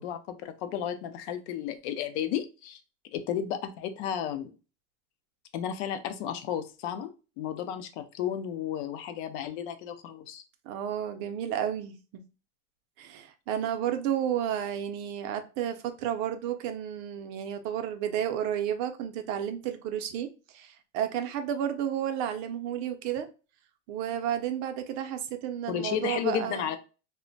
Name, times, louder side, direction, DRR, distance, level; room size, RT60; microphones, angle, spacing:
voice 1, 0.0-2.8 3.1-4.6 5.5-7.1 7.4-10.4 25.7-26.8, left 9 dB, 85° left, 0.6 m, -33 dB
voice 2, 10.7-12.0 13.0-23.3 23.9-26.7, right 10 dB, 60° right, 0.5 m, -32 dB
2.1 x 2.1 x 3.8 m
cardioid pair, 160°, 34 cm